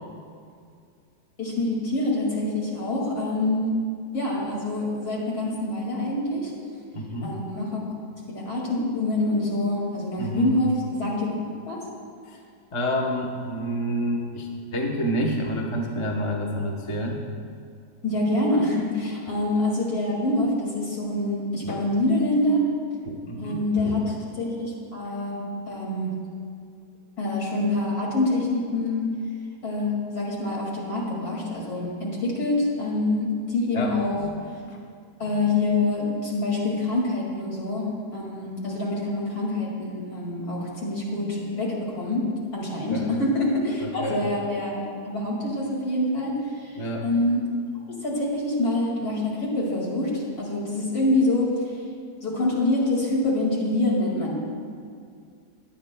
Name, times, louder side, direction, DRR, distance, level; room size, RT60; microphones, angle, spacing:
voice 1, 1.4-3.7 4.1-6.5 7.2-7.8 8.3-11.3 11.7-11.8 18.0-22.6 23.3-24.0 24.4-26.1 27.2-29.1 29.6-34.2 35.2-47.4 48.0-51.8 52.2-54.3, left 2 dB, 60° left, -3 dB, 2.8 m, -26 dB
voice 2, 6.9-7.4 10.2-10.5 12.2-12.4 12.7-17.2 21.6-21.8 23.0-24.0 33.7-33.9 34.3-34.4 34.6-34.8 42.9-43.1 43.8-44.2 46.7-47.1, equal, 25° left, -1 dB, 0.8 m, -29 dB
17.0 x 10.5 x 2.3 m, 2.3 s
omnidirectional pair, 1.8 m